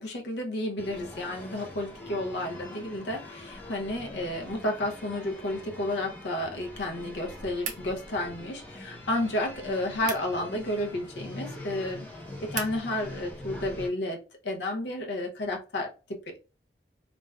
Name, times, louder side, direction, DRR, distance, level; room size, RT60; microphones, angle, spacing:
voice 1, 0.0-12.1 12.4-16.4, left 1 dB, 75° left, 0.6 m, -32 dB
sound 1, 0.8-13.9, left 1 dB, 10° left, 0.6 m, -43 dB
sound 2, 7.6-12.8, right 6 dB, 45° right, 0.6 m, -43 dB
3.3 x 2.4 x 2.2 m
head